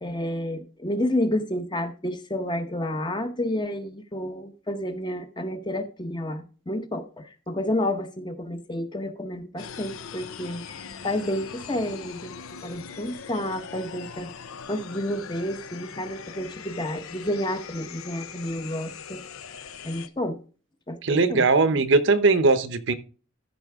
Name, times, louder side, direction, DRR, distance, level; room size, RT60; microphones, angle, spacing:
voice 1, 0.0-12.3 12.6-14.3 14.7-19.2 19.8-20.4 20.9-21.4 21.7-21.8, left 1 dB, 20° left, 0.8 m, -30 dB
sound 1, 9.6-20.1, left 7 dB, 85° left, 0.7 m, -41 dB
voice 2, 21.0-22.9, right 3 dB, 60° right, 0.8 m, -20 dB
14.0 x 5.8 x 3.5 m
head